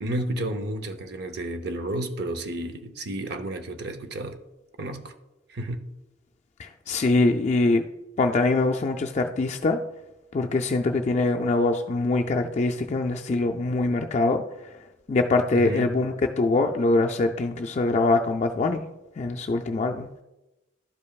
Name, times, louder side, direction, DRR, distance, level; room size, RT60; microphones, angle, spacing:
voice 1, 0.0-4.4 4.8-5.1 5.5-5.9 15.5-15.9, right 1 dB, 60° right, 8 dB, 0.7 m, -31 dB
voice 2, 6.6-7.8 8.2-9.8 10.3-14.7 15.1-18.8 19.2-20.1, left 2 dB, 40° left, 3 dB, 0.4 m, -23 dB
12.0 x 5.3 x 2.3 m, 0.97 s
head